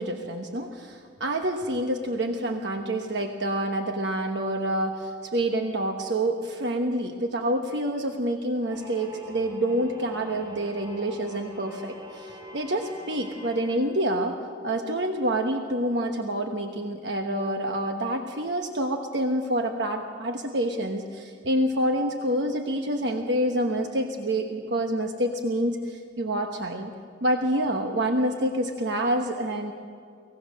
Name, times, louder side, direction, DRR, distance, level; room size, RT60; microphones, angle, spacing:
voice 1, 0.0-14.4 14.6-26.9 27.2-29.7, right 1 dB, 65° right, 4 dB, 1.2 m, -27 dB
sound 1, 8.7-13.8, equal, 20° right, 7.6 m, -44 dB
24.0 x 17.5 x 6.4 m, 2.2 s
head